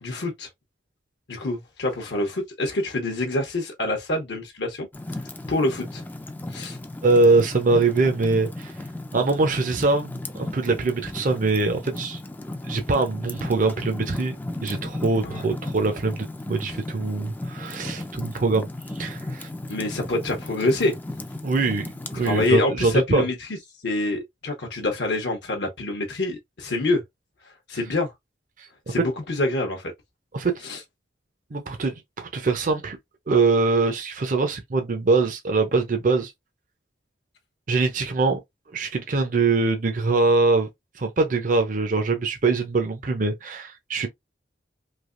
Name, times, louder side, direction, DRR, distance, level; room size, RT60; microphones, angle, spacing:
voice 1, 0.0-0.5 1.3-4.9 5.5-6.0 6.5-6.8 15.2-15.4 19.7-20.9 22.1-23.4 23.8-27.0 27.7-28.1 28.9-29.9 30.6-30.8, left 2 dB, 65° left, 0.8 m, -26 dB
Fire, 4.9-22.5, left 1 dB, 10° left, 0.3 m, -35 dB
voice 2, 7.0-8.7 9.1-12.2 12.7-14.4 14.6-18.7 19.0-19.5 21.4-21.9 22.1-23.2 28.6-28.7 28.9-29.0 30.3-30.5 31.5-33.0 33.3-36.3 37.7-38.4 38.7-40.7 41.0-44.1, right 3 dB, 45° right, 0.6 m, -23 dB
3.3 x 2.8 x 2.5 m
head